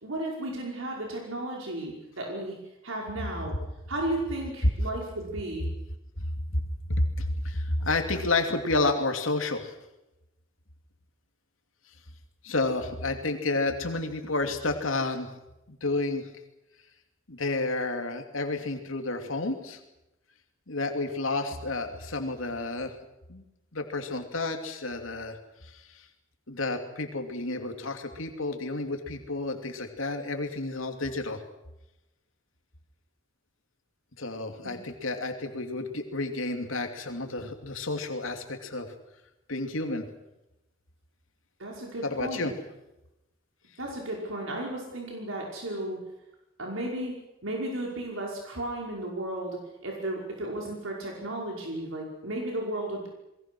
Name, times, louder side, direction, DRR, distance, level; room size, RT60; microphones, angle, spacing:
voice 1, 0.0-2.6 2.8-3.6 3.9-5.7 34.6-34.8 41.6-42.5 43.8-46.0 46.6-47.1 47.4-53.1, right 1 dB, 85° right, -1 dB, 5.4 m, -34 dB
voice 2, 6.9-9.7 12.4-15.3 15.7-16.3 17.3-19.8 20.7-22.9 23.3-23.4 23.7-25.4 25.7-26.0 26.5-31.4 34.2-38.9 39.5-40.0 42.0-42.5, left 2 dB, 85° left, 5 dB, 2.8 m, -30 dB
28.0 x 22.0 x 6.3 m, 0.93 s
head